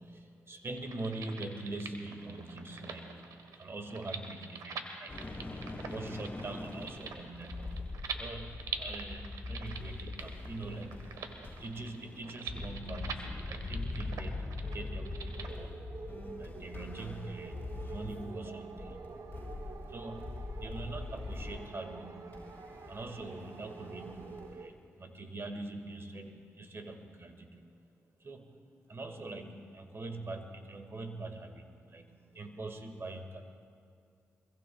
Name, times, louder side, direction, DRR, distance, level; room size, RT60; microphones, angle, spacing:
voice 1, 0.0-3.3 3.5-5.4 5.8-11.1 11.6-15.8 16.4-19.1 19.9-22.5 22.9-27.7 28.2-28.6 28.9-33.4, right 2 dB, 45° right, 5 dB, 2.0 m, -43 dB
sound 1, 0.7-15.5, right 6 dB, 80° right, 1.4 m, -45 dB
sound 2, 5.1-18.4 18.7-21.7 22.3-24.5, left 3 dB, 35° left, 5.1 m, -42 dB
sound 3, 14.6-24.7, right 4 dB, 60° right, 1.1 m, -48 dB
24.0 x 22.5 x 2.4 m, 2.3 s
supercardioid pair, 50°, 6 cm